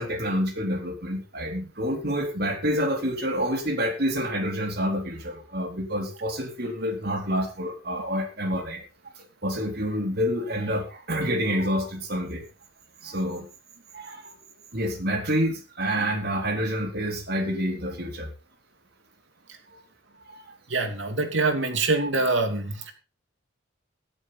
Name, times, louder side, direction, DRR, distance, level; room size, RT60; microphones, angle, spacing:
voice 1, 0.0-8.8 9.2-12.4 13.0-13.5 13.9-14.3 14.7-18.3 19.7-19.8 20.3-20.5, equal, 50° right, 4 dB, 4.0 m, -28 dB
voice 2, 20.7-22.9, right 3 dB, 70° right, 6 dB, 3.0 m, -25 dB
17.0 x 11.5 x 4.2 m, 0.34 s
head